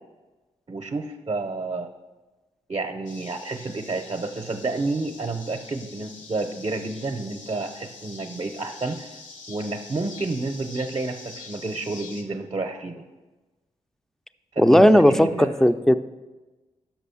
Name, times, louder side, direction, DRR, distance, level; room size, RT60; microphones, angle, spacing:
voice 1, 0.7-1.9 2.7-9.2 9.5-13.0 14.5-15.5, right 3 dB, 40° right, 4 dB, 0.6 m, -30 dB
sound 1, 3.1-12.2, left 4 dB, 85° left, 0.9 m, -45 dB
voice 2, 14.6-16.0, equal, 5° left, 11 dB, 0.4 m, -16 dB
6.1 x 6.0 x 7.0 m, 1.2 s
cardioid pair, 75°, 13 cm